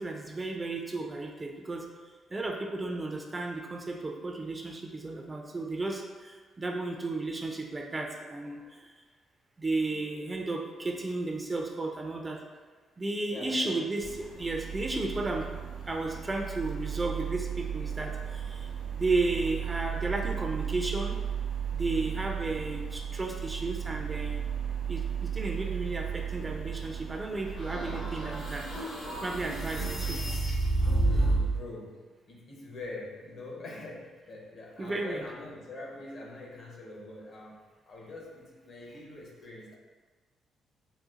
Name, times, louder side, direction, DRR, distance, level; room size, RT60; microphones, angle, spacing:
voice 1, 0.0-1.9 2.3-8.9 9.6-12.4 13.0-15.5 15.9-21.2 21.7-24.4 24.9-28.9 29.2-30.2 34.8-35.2, right 2 dB, 25° right, 1 dB, 0.4 m, -33 dB
voice 2, 13.3-13.8 21.9-22.1 31.0-37.6 37.9-39.8, left 2 dB, 60° left, -2 dB, 0.8 m, -44 dB
sound 1, 14.0-30.2, right 8 dB, 75° right, 0.8 m, -35 dB
sound 2, 27.5-31.6, right 2 dB, 75° left, 1.2 m, -29 dB
3.9 x 2.3 x 2.4 m, 1.4 s
cardioid pair, 90°, 0 cm